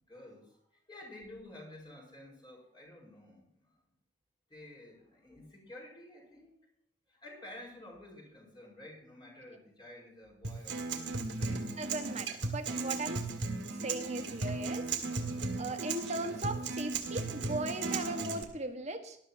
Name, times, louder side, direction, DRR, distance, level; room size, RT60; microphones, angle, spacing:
voice 1, 0.1-0.6 0.9-3.8 4.5-6.7 7.1-11.6, left 1 dB, 25° left, -1 dB, 5.4 m, -51 dB
Acoustic guitar, 10.4-18.4, right 3 dB, 70° right, 2.1 m, -36 dB
voice 2, 11.8-13.3 13.8-14.9 15.6-19.2, right 2 dB, 40° right, 5 dB, 1.5 m, -38 dB
19.0 x 12.5 x 2.9 m, 0.69 s
head